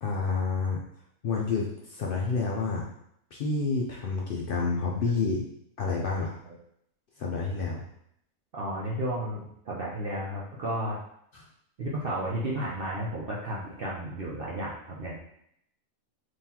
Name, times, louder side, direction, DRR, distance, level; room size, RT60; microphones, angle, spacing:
voice 1, 0.0-0.8 1.2-2.9 3.3-5.4 5.8-6.4 7.2-7.8 11.3-11.5, left 4 dB, 70° left, -2 dB, 0.5 m, -29 dB
voice 2, 8.5-11.0 11.8-15.2, right 1 dB, 55° right, -4 dB, 0.7 m, -33 dB
3.8 x 3.1 x 2.8 m, 0.72 s
omnidirectional pair, 1.4 m